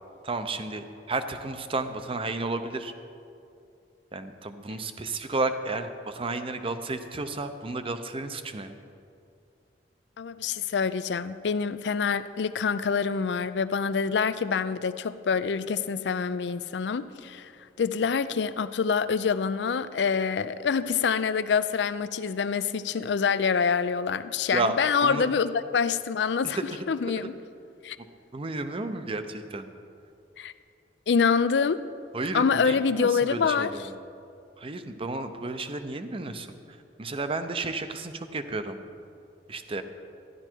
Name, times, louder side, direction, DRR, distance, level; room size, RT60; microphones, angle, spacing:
voice 1, 0.2-2.9 4.1-8.7 24.5-25.3 26.4-26.6 28.3-29.7 32.1-33.9 34.6-36.5 37.0-38.8 39.5-39.8, right 3 dB, 30° right, 9 dB, 0.6 m, -32 dB
voice 2, 10.2-17.5 17.8-26.6 26.9-27.3 27.8-28.0 30.4-30.5 31.1-31.8 32.3-33.7, left 6 dB, 75° left, 14 dB, 0.4 m, -26 dB
13.5 x 11.0 x 4.5 m, 2.5 s
head